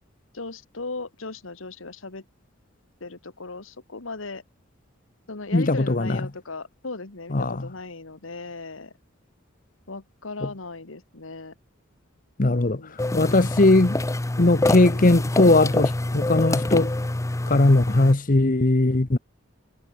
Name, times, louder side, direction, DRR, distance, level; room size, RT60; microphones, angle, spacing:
voice 1, 0.3-2.2 3.0-4.4 5.3-8.9 9.9-11.5 12.7-13.0, left 3 dB, 85° left, 1.8 m, -37 dB
voice 2, 5.5-6.3 7.3-7.6 10.4-10.5 12.4-14.0 14.4-16.9 17.5-19.2, left 2 dB, 45° left, 1.0 m, -19 dB
sound 1, 13.0-18.1, left 2 dB, 15° left, 0.5 m, -26 dB
head